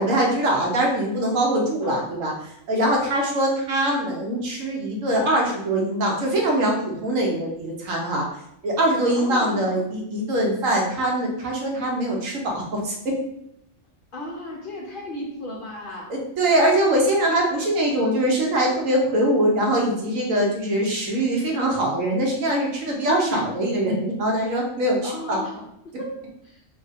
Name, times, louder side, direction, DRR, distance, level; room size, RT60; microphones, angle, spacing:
voice 1, 0.0-2.3 2.7-8.2 8.6-13.2 16.1-25.4, right 1 dB, 80° right, -1 dB, 1.2 m, -22 dB
voice 2, 9.1-9.7 14.1-16.1 23.0-23.5 25.0-25.6 25.8-26.1 26.4-26.6, left 1 dB, 55° left, -2 dB, 0.6 m, -34 dB
2.9 x 2.5 x 4.0 m, 0.77 s
omnidirectional pair, 1.4 m